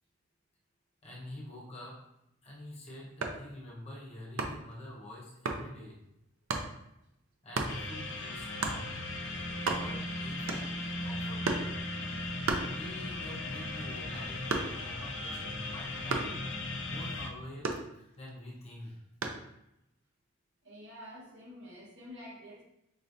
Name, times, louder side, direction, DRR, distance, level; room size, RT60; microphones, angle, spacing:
voice 1, 1.0-2.1 2.4-6.0 7.4-9.0 9.7-11.7 12.7-16.4 16.9-19.0, left 1 dB, 30° left, -4 dB, 1.0 m, -46 dB
sound 1, 3.1-3.5 4.4-4.7 5.4-5.7 6.5-6.7 7.5-7.8 8.6-8.8 9.3-9.4 9.5-10.1 10.5-10.9 11.4-11.8 12.4-13.2 13.6-15.0 16.1-16.4 17.6-18.3 19.2-19.5, right 3 dB, 85° right, 0.6 m, -34 dB
sound 2, 7.7-17.3, left 2 dB, 70° left, 0.6 m, -37 dB
voice 2, 20.6-22.6, left 1 dB, 60° right, -4 dB, 1.4 m, -48 dB
5.3 x 3.2 x 2.7 m, 0.82 s
head